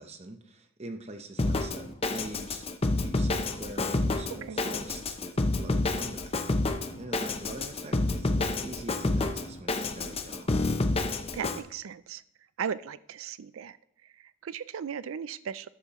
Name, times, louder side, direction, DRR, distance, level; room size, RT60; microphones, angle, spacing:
voice 1, 0.0-2.7 3.0-10.7, right 2 dB, 30° right, 6 dB, 0.9 m, -43 dB
Drum kit, 1.4-11.6, left 2 dB, 30° left, 0.6 m, -29 dB
voice 2, 11.3-12.2 12.6-13.8 14.0-15.7, right 7 dB, 75° right, 16 dB, 0.4 m, -37 dB
13.0 x 10.5 x 3.1 m, 0.76 s
head